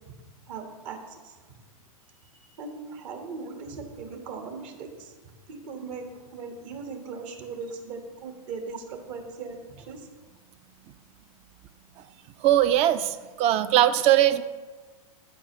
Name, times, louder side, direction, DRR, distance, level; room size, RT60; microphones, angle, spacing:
voice 1, 0.5-1.4 2.2-10.1, right 4 dB, 55° right, 4 dB, 1.5 m, -39 dB
voice 2, 12.4-14.4, right 12 dB, 35° right, 14 dB, 0.5 m, -20 dB
9.2 x 8.8 x 3.1 m, 1.3 s
hypercardioid pair, 110°, 19 cm